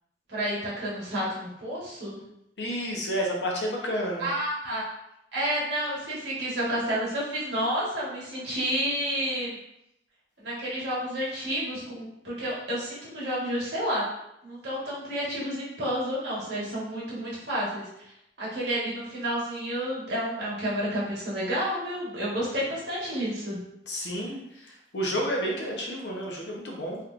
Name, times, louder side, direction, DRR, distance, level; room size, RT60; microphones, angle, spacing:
voice 1, 0.3-2.2 4.2-4.8 5.3-9.6 10.4-14.0 14.4-17.9 18.4-23.6, equal, 70° right, -7 dB, 1.4 m, -30 dB
voice 2, 2.6-4.3 23.9-27.0, equal, 70° left, -1 dB, 0.8 m, -30 dB
3.3 x 3.1 x 2.5 m, 0.81 s
head